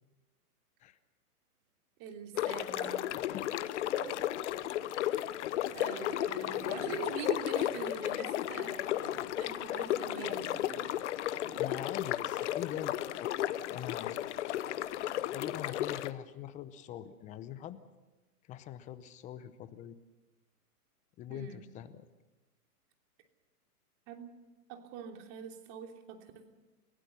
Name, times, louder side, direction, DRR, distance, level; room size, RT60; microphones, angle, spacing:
voice 1, 2.0-3.1 5.7-8.9 9.4-10.5 21.3-21.6 24.1-24.3 24.7-26.5, right 7 dB, 35° right, 3 dB, 3.1 m, -44 dB
sound 1, 2.3-2.7 3.9-4.7 5.1-5.3 5.7-5.8 6.1-6.2 6.4-8.5 8.9-9.3 10.2-11.0 11.4-11.8 12.4-12.6, right 8 dB, 70° right, 2.1 m, -51 dB
sound 2, 2.4-16.1, left 13 dB, 50° left, 1.0 m, -34 dB
voice 2, 11.6-13.3 13.7-14.2 14.5-14.6 15.3-17.8 18.5-20.0 21.2-22.1, left 11 dB, 15° left, 13 dB, 0.7 m, -43 dB
28.5 x 16.0 x 7.0 m, 1.2 s
hypercardioid pair, 135°, 46 cm